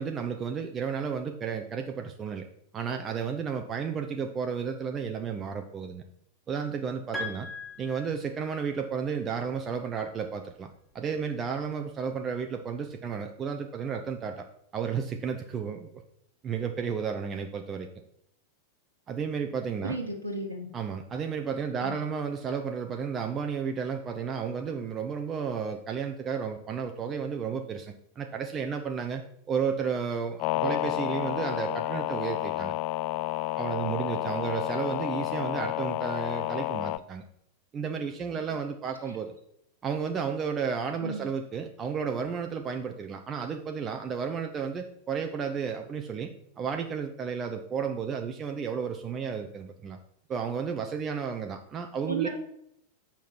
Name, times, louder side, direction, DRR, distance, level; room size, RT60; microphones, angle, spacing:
voice 1, 0.0-2.5 2.7-6.0 6.5-7.5 7.8-14.5 14.7-15.9 16.4-17.9 19.1-20.0 20.7-29.2 29.5-32.7 33.6-37.3 37.7-39.3 39.8-46.3 46.6-50.0 50.3-52.3, right 6 dB, 25° right, 5 dB, 0.6 m, -32 dB
Piano, 7.1-8.8, left 2 dB, 20° left, 2.4 m, -39 dB
voice 2, 19.8-20.7 21.8-22.0 41.0-41.3 52.1-52.3, right 3 dB, 75° right, 1 dB, 1.3 m, -33 dB
sound 1, 30.4-37.0, left 15 dB, 40° left, 0.3 m, -30 dB
7.1 x 5.8 x 4.5 m, 0.73 s
figure-of-eight pair, 90°, 0 cm